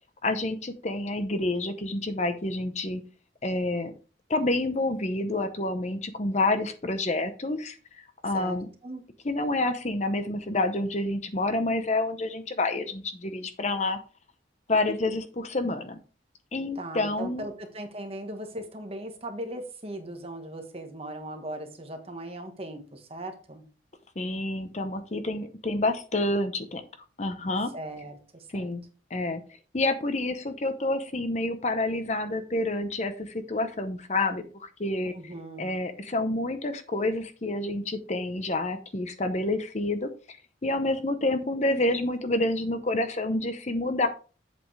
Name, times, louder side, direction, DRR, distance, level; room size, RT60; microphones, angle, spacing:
voice 1, 0.2-3.0 3.4-3.9 4.3-8.7 9.2-14.0 14.7-16.0 16.5-17.4 24.2-26.8 27.2-27.7 28.5-28.8 29.1-29.4 29.7-35.1 35.6-40.4 40.6-44.1, left 2 dB, 35° left, 9 dB, 0.8 m, -28 dB
voice 2, 8.3-9.0 16.7-23.6 27.7-28.7 35.1-35.7, right 1 dB, 30° right, 5 dB, 1.4 m, -39 dB
7.8 x 7.8 x 3.3 m, 0.35 s
head